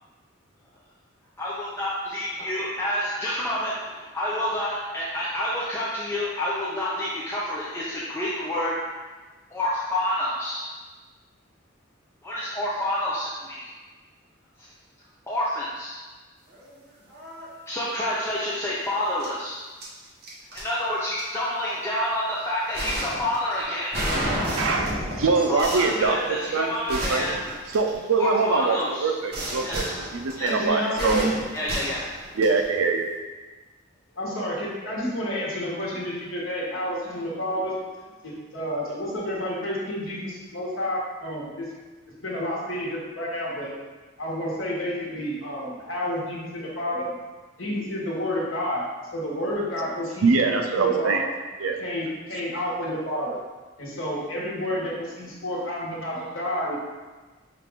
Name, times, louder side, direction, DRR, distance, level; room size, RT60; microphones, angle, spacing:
voice 1, 1.4-8.7 9.5-10.7 12.2-13.7 15.3-15.9 17.7-19.6 20.5-23.9 25.5-27.4 28.2-29.1 29.6-29.9 30.4-31.2 31.5-32.0, left 1 dB, 15° left, -7 dB, 0.5 m, -28 dB
sound 1, 16.5-16.7 17.1-17.5 19.2-19.3 19.8-20.6 21.2-21.3 22.7-28.4 29.3-32.8, equal, 55° right, 1.1 m, -32 dB
voice 2, 24.6-27.3 27.7-29.8 30.1-31.3 32.3-33.1 50.2-51.2 51.6-51.8, right 4 dB, 85° right, 4 dB, 0.5 m, -23 dB
voice 3, 27.2-27.6 30.5-31.3 34.1-37.8 38.2-41.7 42.0-43.7 44.2-47.1 47.6-48.8 49.1-51.2 51.8-53.4 53.8-56.8, left 1 dB, 80° left, -5 dB, 1.2 m, -30 dB
5.8 x 2.5 x 3.5 m, 1.3 s
head